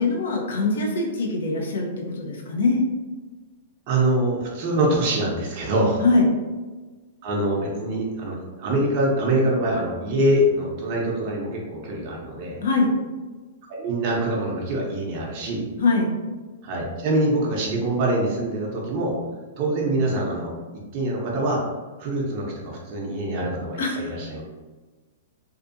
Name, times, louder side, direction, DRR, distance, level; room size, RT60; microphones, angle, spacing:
voice 1, 0.0-2.9 6.0-6.3 12.6-12.9 15.8-16.1 23.8-24.0, left 3 dB, 70° left, 0 dB, 0.7 m, -22 dB
voice 2, 3.9-6.0 7.2-12.6 13.7-15.7 16.6-19.2 19.6-20.6 20.9-21.6 22.0-24.4, right 1 dB, 45° right, -3 dB, 0.7 m, -24 dB
2.6 x 2.4 x 2.6 m, 1.3 s
hypercardioid pair, 120°, 0 cm